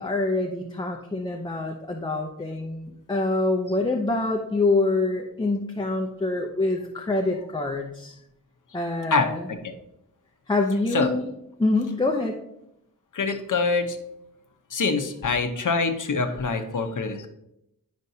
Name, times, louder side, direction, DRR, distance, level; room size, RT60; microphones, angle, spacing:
voice 1, 0.0-8.1 8.7-9.4 10.5-11.3 11.6-12.4, left 2 dB, 15° left, 1 dB, 0.6 m, -25 dB
voice 2, 9.1-9.7 10.9-11.1 13.1-14.0 14.7-17.3, left 4 dB, 55° left, 5 dB, 0.9 m, -25 dB
10.5 x 5.2 x 2.7 m, 0.81 s
wide cardioid pair, 115°, 36 cm